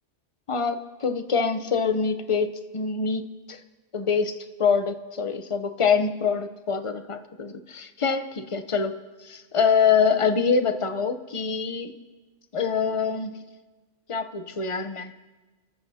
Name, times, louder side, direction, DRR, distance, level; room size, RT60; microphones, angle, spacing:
voice 1, 0.5-3.6 3.9-8.9 9.3-11.9 12.5-13.3 14.1-15.1, left 5 dB, 30° left, 9 dB, 0.7 m, -25 dB
29.5 x 14.0 x 2.8 m, 1.3 s
omnidirectional pair, 1.3 m